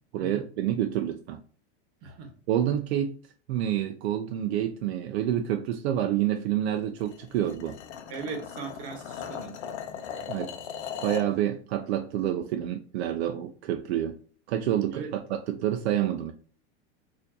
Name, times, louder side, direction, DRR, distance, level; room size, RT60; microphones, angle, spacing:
voice 1, 0.1-1.4 2.5-3.2 3.5-7.8 10.3-10.5 11.0-14.2 14.5-16.3, right 11 dB, 70° right, 5 dB, 0.5 m, -28 dB
sound 1, 7.0-11.3, left 8 dB, 75° left, 0.6 m, -38 dB
voice 2, 8.1-9.5 14.9-15.1, right 5 dB, 35° right, 3 dB, 1.0 m, -38 dB
4.4 x 2.6 x 2.7 m, 0.42 s
supercardioid pair, 165°, 34 cm